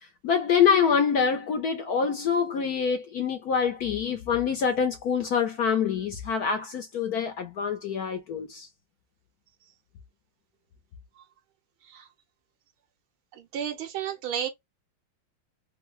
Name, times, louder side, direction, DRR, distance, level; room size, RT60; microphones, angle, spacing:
voice 1, 0.2-8.7, left 7 dB, 70° left, 0.9 m, -25 dB
voice 2, 13.3-14.5, right 9 dB, 90° right, 1.8 m, -33 dB
3.7 x 2.0 x 3.0 m
omnidirectional pair, 2.2 m